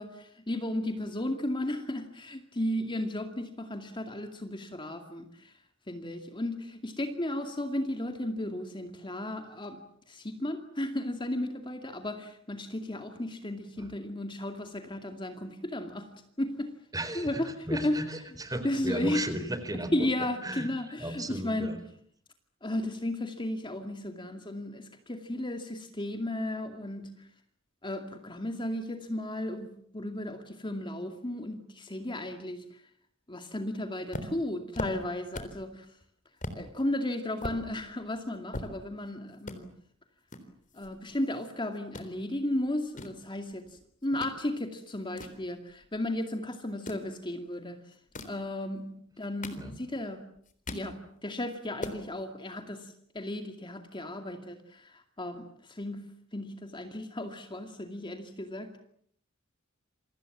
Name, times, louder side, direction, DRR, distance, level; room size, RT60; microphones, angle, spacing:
voice 1, 0.0-5.5 5.9-9.8 10.1-16.1 16.4-16.7 17.1-18.0 18.6-19.2 19.9-21.8 22.6-27.1 27.8-32.8 33.3-35.9 36.5-39.7 40.7-47.8 48.2-50.3 50.7-58.8, left 1 dB, 25° left, 6 dB, 2.3 m, -34 dB
voice 2, 16.9-17.4 17.7-19.9 20.4-20.7 21.0-21.8 49.6-49.8, right 1 dB, 20° right, 10 dB, 4.3 m, -35 dB
sound 1, 34.1-35.7 36.0-36.1 36.4-36.6 37.1-39.1 39.4-39.6 40.3-41.5 41.7-42.1 42.7-44.4 44.8-46.1 46.7-47.1 47.9-48.4 49.1-50.0 50.4-50.9 51.3-51.4 51.6-52.0, left 1 dB, 40° left, 3.7 m, -40 dB
28.5 x 24.5 x 7.4 m, 0.64 s
head